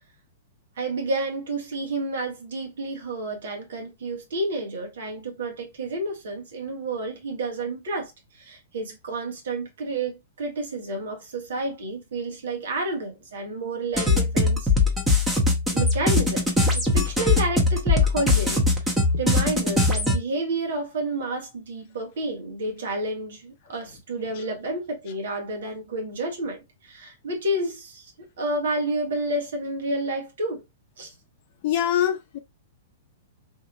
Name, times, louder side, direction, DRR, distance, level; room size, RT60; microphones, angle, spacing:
voice 1, 0.8-14.7 15.7-16.5 16.7-30.6 31.0-31.1, right 2 dB, 65° right, 1.3 m, -30 dB
sound 1, 14.0-20.2, left 2 dB, 10° right, 1.0 m, -21 dB
voice 2, 31.6-32.4, left 10 dB, 50° left, 0.7 m, -23 dB
2.9 x 2.7 x 2.5 m
hypercardioid pair, 110°, 0 cm